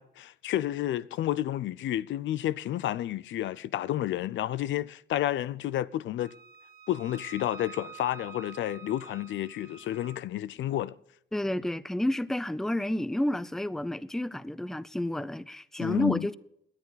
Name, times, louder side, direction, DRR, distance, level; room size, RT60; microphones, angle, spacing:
voice 1, 0.0-6.3 6.9-11.0 15.8-16.3, left 13 dB, 70° left, 0.5 m, -31 dB
Wind instrument woodwind instrument, 6.2-10.2, right 6 dB, 50° right, 1.6 m, -48 dB
voice 2, 11.3-16.3, left 1 dB, ahead, 0.5 m, -30 dB
18.5 x 10.5 x 4.0 m
cardioid pair, 90°, 20 cm